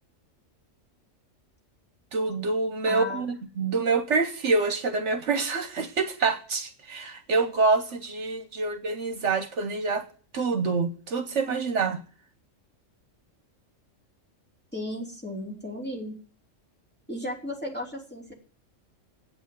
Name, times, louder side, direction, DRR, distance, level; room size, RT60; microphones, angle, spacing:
voice 1, 2.1-10.1 10.3-12.0, right 4 dB, 70° right, 1.3 m, -26 dB
voice 2, 2.9-3.2 14.7-16.1 17.1-18.3, left 1 dB, 10° left, 3.1 m, -34 dB
9.1 x 8.6 x 9.3 m
omnidirectional pair, 1.3 m